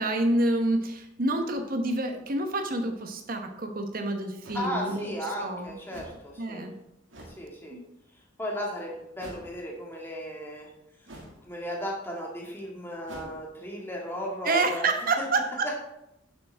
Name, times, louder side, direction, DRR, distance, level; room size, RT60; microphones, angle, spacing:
voice 1, 0.0-5.7 6.4-6.7 7.7-7.8 14.4-15.7, right 2 dB, 45° right, 5 dB, 1.1 m, -28 dB
sound 1, 4.4-4.7 5.9-6.2 7.1-7.4 9.2-9.6 11.1-11.4 13.1-13.3, right 1 dB, 75° right, 2.1 m, -45 dB
voice 2, 4.5-6.6 7.4-7.8 8.4-10.7 11.4-14.9 15.6-15.7, equal, 10° left, -2 dB, 1.9 m, -35 dB
10.5 x 7.2 x 3.5 m, 0.85 s
head